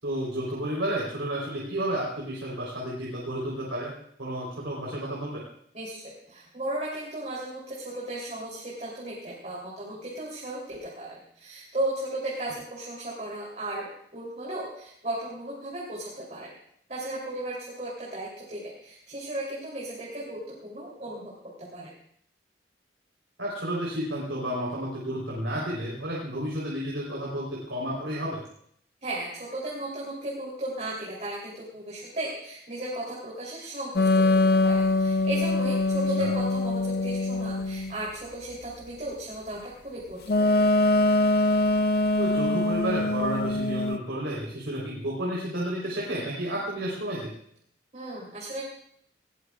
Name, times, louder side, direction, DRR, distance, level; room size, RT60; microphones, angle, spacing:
voice 1, 0.0-3.9 4.2-5.4 23.4-28.4 36.2-36.3 42.2-47.3, right 1 dB, 85° right, -4 dB, 3.9 m, -31 dB
voice 2, 5.7-16.5 16.9-21.9 29.0-34.2 34.6-40.7 47.9-48.6, right 1 dB, 40° right, -5 dB, 3.4 m, -35 dB
sound 1, 34.0-38.0 40.3-44.0, left 2 dB, 55° left, 0.6 m, -23 dB
20.0 x 17.5 x 2.4 m, 0.66 s
head